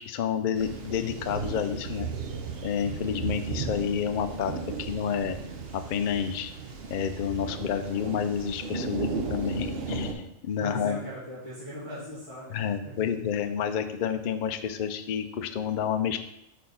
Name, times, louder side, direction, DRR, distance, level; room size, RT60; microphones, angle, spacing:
voice 1, 0.0-2.1 2.6-4.5 4.8-5.4 5.7-6.5 6.9-11.0 12.5-16.2, left 8 dB, 85° left, 9 dB, 0.4 m, -29 dB
sound 1, 0.5-10.1, right 5 dB, 55° right, 0.8 m, -35 dB
voice 2, 10.6-12.9, right 1 dB, 25° right, -11 dB, 1.8 m, -39 dB
4.6 x 4.4 x 5.4 m, 0.83 s
omnidirectional pair, 1.4 m